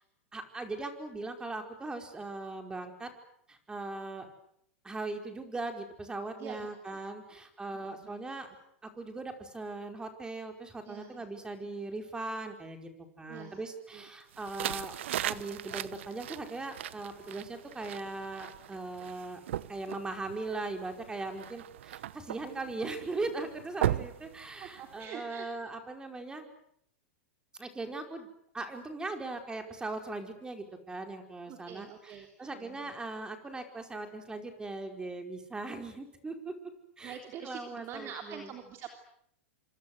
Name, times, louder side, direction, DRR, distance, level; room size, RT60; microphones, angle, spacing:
voice 1, 0.3-3.1 3.5-4.3 4.8-8.5 8.8-12.9 13.2-14.9 15.2-19.4 19.7-26.5 27.6-28.3 28.5-36.5 37.0-37.2 37.4-38.5, right 2 dB, 10° right, 6 dB, 5.0 m, -39 dB
voice 2, 6.4-7.0 7.2-7.4 7.7-8.1 10.8-11.3 11.6-11.7 13.3-14.1 24.6-25.5 31.4-32.9 37.0-38.9, right 8 dB, 40° right, 5 dB, 3.4 m, -46 dB
sound 1, 14.3-25.0, right 12 dB, 70° right, 1.0 m, -38 dB
26.5 x 26.5 x 8.0 m, 0.70 s
hypercardioid pair, 110°, 7 cm